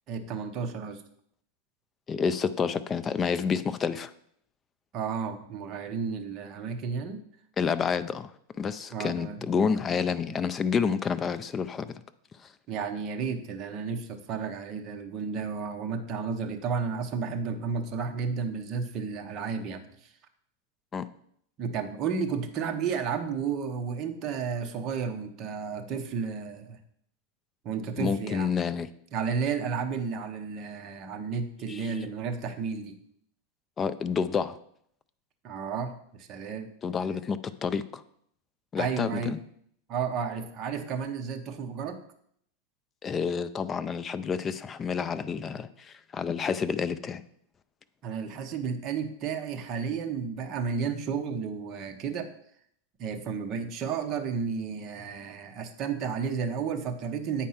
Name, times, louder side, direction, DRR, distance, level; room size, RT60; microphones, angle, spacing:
voice 1, 0.1-1.0 4.9-7.2 8.9-9.4 12.7-20.1 21.6-26.8 27.6-28.5 29.1-33.0 35.4-36.7 38.8-39.4 39.9-42.0 48.0-52.3 53.0-57.5, right 6 dB, 30° right, 5 dB, 0.9 m, -32 dB
voice 2, 2.1-4.1 7.6-8.3 8.6-11.9 20.9-21.1 28.0-28.9 31.7-32.0 33.8-34.6 36.8-38.0 38.7-39.4 43.0-47.2, left 6 dB, 20° left, 14 dB, 0.4 m, -29 dB
8.6 x 4.4 x 5.7 m, 0.67 s
supercardioid pair, 150°, 0 cm